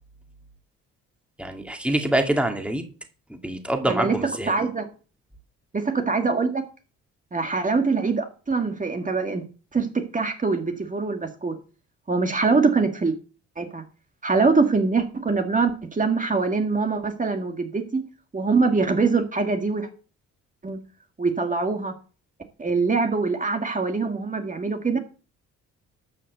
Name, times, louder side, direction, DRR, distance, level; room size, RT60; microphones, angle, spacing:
voice 1, 1.4-2.9 3.3-4.5, right 1 dB, 5° right, 4 dB, 2.2 m, -25 dB
voice 2, 3.9-4.9 5.7-6.6 7.3-9.4 9.7-11.6 12.1-13.1 13.6-13.8 14.2-18.1 18.3-19.9 20.6-20.8 21.2-21.9 22.6-25.0, right 4 dB, 25° right, 5 dB, 1.9 m, -23 dB
12.5 x 5.6 x 7.9 m, 0.37 s
cardioid pair, 90°, 30 cm